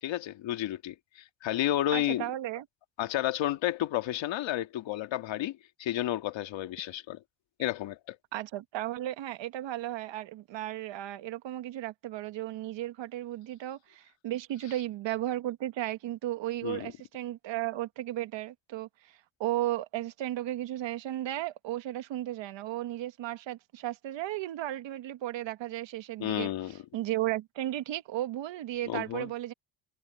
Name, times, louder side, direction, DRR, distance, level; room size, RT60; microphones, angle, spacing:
voice 1, 0.0-2.3 3.0-7.2 7.6-8.2 16.6-16.9 26.2-26.8 28.9-29.3, left 13 dB, 70° left, 1.8 m, -31 dB
voice 2, 1.9-2.6 8.3-29.5, right 14 dB, 70° right, 1.4 m, -35 dB
cardioid pair, 145°, 46 cm